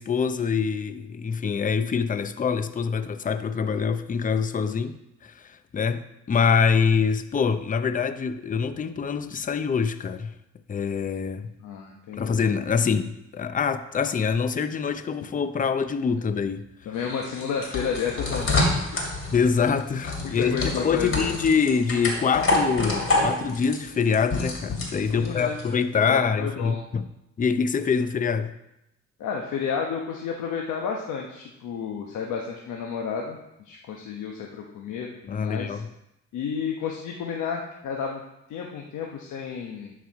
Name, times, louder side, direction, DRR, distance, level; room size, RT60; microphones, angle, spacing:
voice 1, 0.0-5.0 5.2-10.4 10.7-11.5 12.1-16.6 19.3-27.1 27.4-28.5 35.3-35.9, left 6 dB, 25° left, 11 dB, 0.6 m, -25 dB
voice 2, 11.6-12.4 16.9-19.1 20.2-21.3 25.1-25.6 26.1-26.8 29.2-33.4 33.6-35.8 36.3-38.2 38.5-39.9, left 6 dB, 80° left, 0 dB, 1.1 m, -31 dB
sound 1, 16.9-25.7, left 2 dB, 45° left, 2.7 m, -27 dB
11.0 x 4.8 x 4.7 m, 0.86 s
cardioid pair, 90°, 30 cm